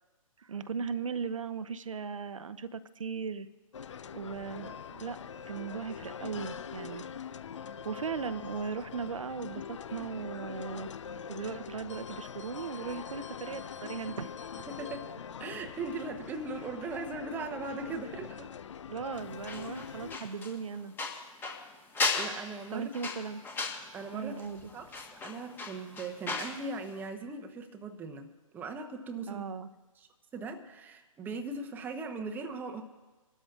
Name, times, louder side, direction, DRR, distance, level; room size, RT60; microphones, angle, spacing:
voice 1, 0.4-3.5 4.1-5.2 5.5-7.1 7.8-10.9 11.3-14.3 18.9-20.9 22.7-23.4 24.1-24.7 29.3-29.7, right 5 dB, 65° right, 13 dB, 0.7 m, -37 dB
sound 1, 3.7-20.2, left 7 dB, 60° left, 0.5 m, -43 dB
voice 2, 14.7-18.5 22.1-22.9 23.9-24.5 24.7-29.4 30.0-32.8, right 3 dB, 10° right, 5 dB, 0.9 m, -39 dB
sound 2, 19.4-26.6 26.9-27.1, left 4 dB, 10° left, 1.3 m, -36 dB
27.5 x 12.5 x 2.4 m, 1.2 s
figure-of-eight pair, 135°, 18 cm